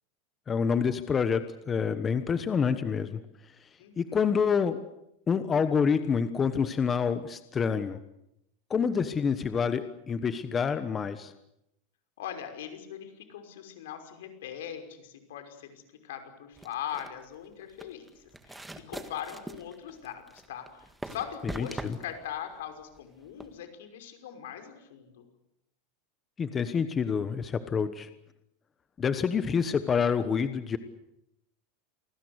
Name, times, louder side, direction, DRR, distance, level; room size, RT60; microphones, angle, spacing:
voice 1, 0.5-3.2 4.0-4.8 5.3-8.0 8.7-11.3 21.6-22.0 26.4-28.1 29.0-30.8, left 6 dB, 20° left, 11 dB, 1.2 m, -27 dB
voice 2, 3.8-4.3 12.2-25.3, left 10 dB, 80° left, 7 dB, 5.6 m, -41 dB
sound 1, 16.6-23.6, right 1 dB, 5° right, 1.8 m, -43 dB
28.0 x 20.0 x 8.1 m, 0.82 s
supercardioid pair, 155°, 0 cm